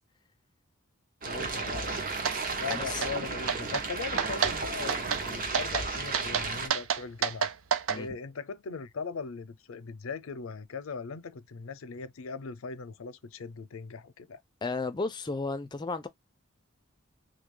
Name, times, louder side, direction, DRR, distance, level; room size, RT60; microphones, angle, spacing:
voice 1, 1.2-2.1 2.6-7.5 7.9-14.4, left 5 dB, 90° left, 0.5 m, -39 dB
sound 1, 1.2-6.7, right 3 dB, 45° right, 0.7 m, -34 dB
sound 2, 2.3-2.4 2.7-3.1 3.5-3.9 4.2-4.6 4.9-5.2 5.5-5.9 6.1-8.0, right 7 dB, 80° right, 0.5 m, -29 dB
voice 2, 2.7-3.0 7.9-8.1 14.6-16.1, left 3 dB, 20° left, 0.4 m, -33 dB
3.2 x 2.3 x 3.6 m
head